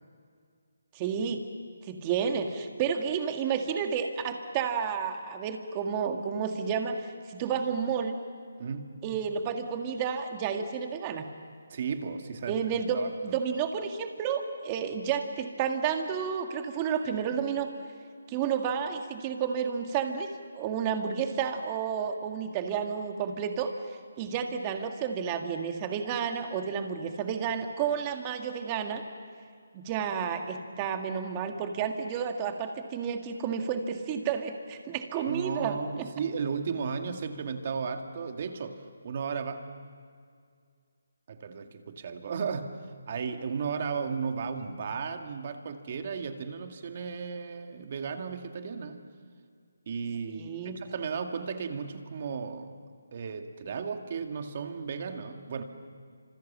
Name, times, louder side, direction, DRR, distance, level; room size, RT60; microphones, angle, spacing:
voice 1, 0.9-1.4 1.8-8.2 9.0-11.3 12.5-17.7 18.3-23.7 24.2-29.0 29.7-36.1 50.3-50.8, right 7 dB, 20° right, 5 dB, 1.9 m, -31 dB
voice 2, 8.6-9.0 11.7-13.4 35.3-39.7 41.3-42.7 43.1-49.0 49.9-52.7 53.1-55.6, right 5 dB, 35° right, 6 dB, 2.1 m, -35 dB
29.5 x 26.5 x 7.5 m, 2.1 s
hypercardioid pair, 170°, 0 cm